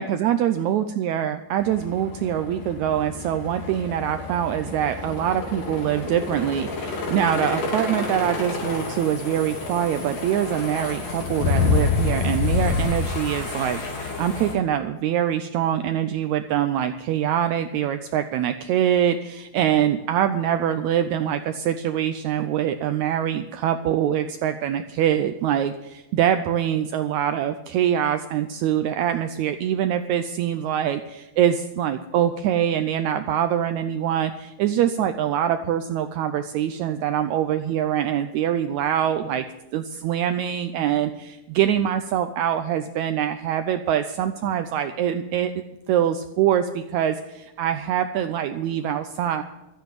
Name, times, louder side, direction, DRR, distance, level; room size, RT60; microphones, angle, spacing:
voice 1, 0.0-39.5 39.7-45.5 45.9-49.4, right 10 dB, 90° right, 8 dB, 1.6 m, -24 dB
sound 1, 1.6-14.5, left 4 dB, 65° left, 4.4 m, -28 dB
13.0 x 9.4 x 9.1 m, 0.99 s
omnidirectional pair, 4.0 m